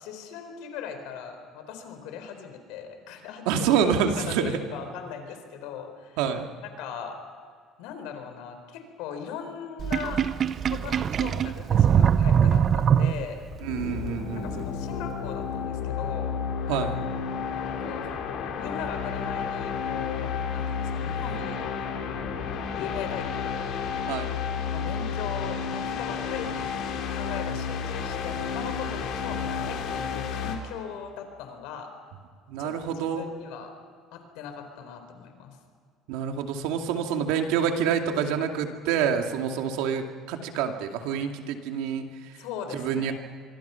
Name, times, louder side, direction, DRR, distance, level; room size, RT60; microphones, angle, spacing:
voice 1, 0.0-3.7 4.2-6.2 6.6-7.2 7.8-10.2 10.7-13.4 14.3-16.4 17.5-18.1 18.6-21.9 22.7-23.7 24.7-26.7 27.1-31.9 32.6-33.7 34.1-35.6 42.4-43.1, left 7 dB, 85° left, 6 dB, 4.2 m, -39 dB
voice 2, 3.5-4.6 6.2-6.4 13.6-14.6 16.7-16.9 24.1-24.3 32.5-33.3 36.1-42.3 42.7-43.1, right 7 dB, 90° right, 4 dB, 2.3 m, -27 dB
Sink (filling or washing), 9.8-13.6, right 8 dB, 40° right, 0.7 m, -22 dB
sound 1, 13.5-30.6, left 6 dB, 65° left, 3.7 m, -31 dB
26.0 x 23.5 x 5.8 m, 2.1 s
cardioid pair, 130°, 0 cm